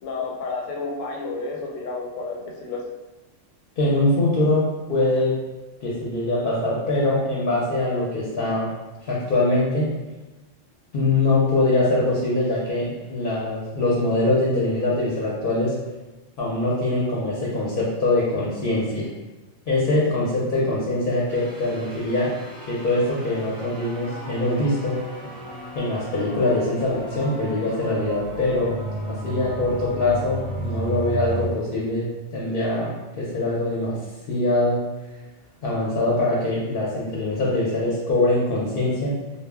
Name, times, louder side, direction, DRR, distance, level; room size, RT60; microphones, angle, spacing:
voice 1, 0.0-2.8, left 3 dB, 90° left, -1 dB, 1.0 m, -31 dB
voice 2, 3.8-4.6 4.9-5.3 5.8-8.7 9.1-9.9 10.9-15.7 16.4-19.1 19.7-22.3 22.7-25.0 25.7-28.8 29.1-32.9 33.2-33.9 34.3-34.8 35.6-39.1, left 2 dB, 60° left, -6 dB, 0.6 m, -23 dB
sound 1, 21.3-31.5, right 1 dB, 15° right, 0.3 m, -34 dB
2.1 x 2.0 x 3.3 m, 1.1 s
omnidirectional pair, 1.3 m